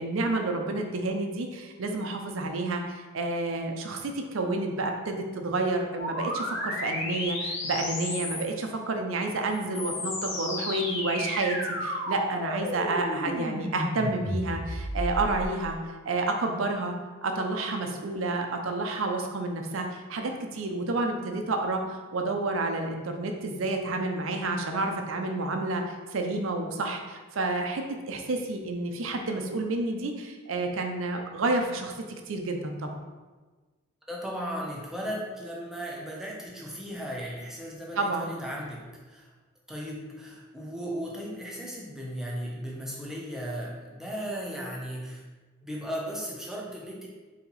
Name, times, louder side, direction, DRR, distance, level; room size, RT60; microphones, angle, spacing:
voice 1, 0.0-15.8 16.0-16.9 17.2-31.9 32.3-32.9 38.0-38.3, right 2 dB, 70° right, 4 dB, 0.5 m, -30 dB
sound 1, 6.0-8.6 9.5-15.5, left 1 dB, 60° left, 0.8 m, -33 dB
voice 2, 34.1-39.3 39.7-45.2 45.6-47.1, equal, ahead, -4 dB, 0.6 m, -36 dB
4.3 x 2.8 x 4.0 m, 1.3 s
head